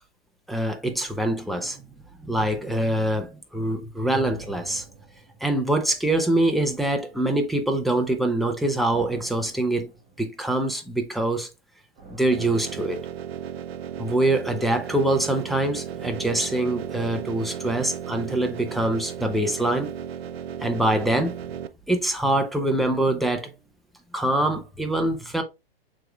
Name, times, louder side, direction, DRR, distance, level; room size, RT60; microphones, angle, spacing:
voice 1, 0.5-1.8 2.2-4.8 5.4-9.9 10.2-11.5 12.1-13.0 14.0-19.9 20.6-21.4 21.9-23.5 24.1-25.4, right 1 dB, ahead, 0.4 m, -24 dB
sound 1, 4.1-6.0 6.5-7.8 8.8-10.6 12.0-14.4 16.0-18.1 18.4-18.5, right 3 dB, 40° right, 2.0 m, -47 dB
sound 2, 12.3-21.7, right 8 dB, 80° right, 0.5 m, -35 dB
7.5 x 3.1 x 2.3 m
hypercardioid pair, 115°, 30 cm